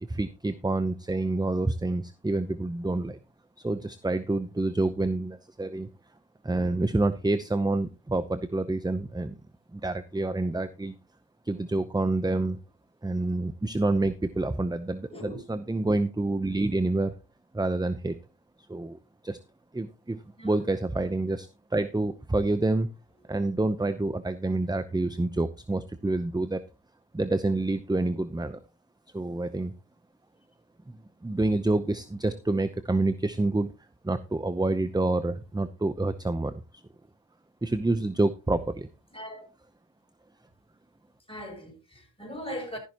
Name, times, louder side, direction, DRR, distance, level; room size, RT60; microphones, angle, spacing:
voice 1, 0.0-3.2 3.6-5.9 6.4-9.3 9.7-11.0 11.5-12.6 13.0-17.1 17.5-18.2 18.7-19.0 19.2-19.4 19.7-22.9 23.3-26.6 27.1-28.6 29.1-29.7 30.9-33.7 34.0-36.8 37.6-38.9, right 2 dB, 10° right, 0.7 m, -28 dB
voice 2, 15.1-15.4 20.4-20.5 39.1-39.5 41.3-42.8, equal, 15° left, 6.8 m, -39 dB
13.0 x 11.0 x 2.9 m
cardioid pair, 70°, 43 cm